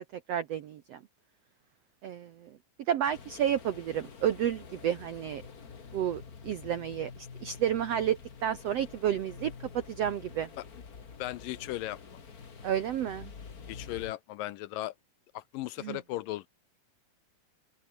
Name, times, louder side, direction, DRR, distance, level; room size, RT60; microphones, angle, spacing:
voice 1, 0.1-1.0 2.0-2.6 2.9-5.4 5.9-10.5 12.6-13.3 15.8-16.0, right 10 dB, 75° right, 1.4 m, -31 dB
sound 1, 3.1-14.1, left 5 dB, 35° left, 1.6 m, -47 dB
voice 2, 11.2-12.0 13.7-14.9 15.3-16.5, left 16 dB, 75° left, 2.2 m, -36 dB
omnidirectional pair, 4.3 m